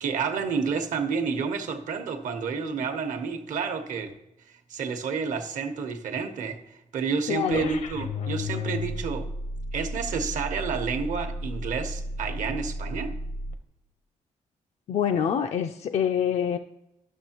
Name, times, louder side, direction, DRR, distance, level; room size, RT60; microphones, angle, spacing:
voice 1, 0.0-4.1 4.5-6.6 6.9-9.3 9.7-13.1, right 5 dB, 75° right, 5 dB, 1.0 m, -30 dB
voice 2, 7.3-7.7 14.9-16.6, left 8 dB, 55° left, 6 dB, 0.4 m, -25 dB
sound 1, 7.5-13.5, left 1 dB, 70° left, 0.8 m, -33 dB
11.0 x 6.4 x 2.9 m, 0.88 s
cardioid pair, 125°, 13 cm